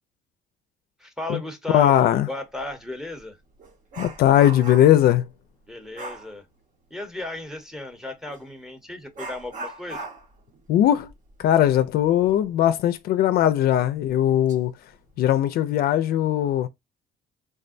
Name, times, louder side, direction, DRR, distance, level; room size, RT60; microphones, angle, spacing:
voice 1, 1.0-3.4 5.7-6.4 6.9-10.1, left 2 dB, 5° right, 0.8 m, -35 dB
voice 2, 1.7-2.3 4.0-5.3 10.7-11.1 11.4-14.7 15.2-16.7, left 11 dB, 65° left, 0.4 m, -19 dB
Dog, 2.6-2.7 3.2-5.1 5.9-6.3 8.3-8.4 9.1-12.4 12.8-12.9 13.4-13.5 14.1-14.6 14.9-15.2, right 3 dB, 50° right, 0.8 m, -39 dB
3.5 x 2.1 x 2.5 m
cardioid pair, 110°, 17 cm